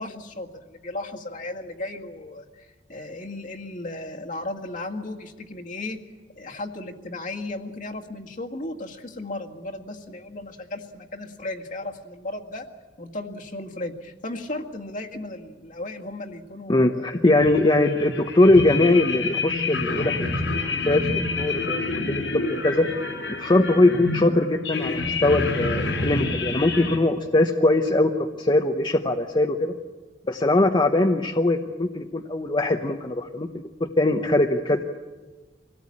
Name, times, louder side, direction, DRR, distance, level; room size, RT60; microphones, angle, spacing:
voice 1, 0.0-2.4 2.9-6.0 6.4-12.7 13.0-17.2, left 2 dB, 45° left, 2 dB, 1.9 m, -35 dB
voice 2, 16.7-20.3 20.9-21.1 21.4-22.9 23.4-29.7 30.3-33.5 33.8-34.8, left 2 dB, 25° left, 3 dB, 0.9 m, -21 dB
sound 1, 17.4-27.0, left 3 dB, 90° left, 4.5 m, -28 dB
24.5 x 17.5 x 8.6 m, 1.3 s
head